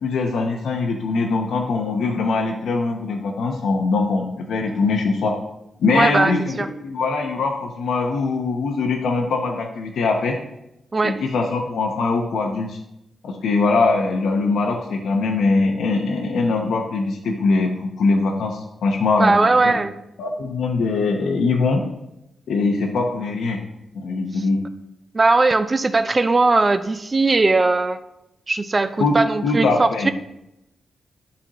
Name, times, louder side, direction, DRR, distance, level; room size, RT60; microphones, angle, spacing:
voice 1, 0.0-5.4 5.8-10.4 11.0-12.8 13.2-19.3 19.6-19.8 20.2-21.8 22.5-23.6 23.9-24.6 29.0-30.1, left 3 dB, 85° left, 3 dB, 0.8 m, -22 dB
voice 2, 5.9-6.7 10.9-11.2 19.2-19.9 25.1-28.0 28.5-30.1, right 3 dB, 30° right, 11 dB, 0.4 m, -19 dB
11.0 x 4.2 x 3.0 m, 0.88 s
cardioid pair, 105°, 0 cm